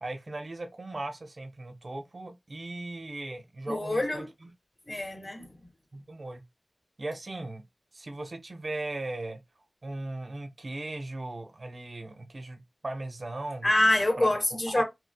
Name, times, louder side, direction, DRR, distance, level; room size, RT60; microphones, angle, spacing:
voice 1, 0.0-4.5 5.9-6.4 7.0-7.6 7.9-9.4 9.8-13.7 14.2-14.3 14.7-14.8, right 2 dB, 65° right, 1.0 m, -38 dB
voice 2, 3.7-4.3 4.9-5.6 13.6-14.8, left 1 dB, 45° left, 1.6 m, -26 dB
4.6 x 2.3 x 2.3 m
cardioid pair, 40°, 0 cm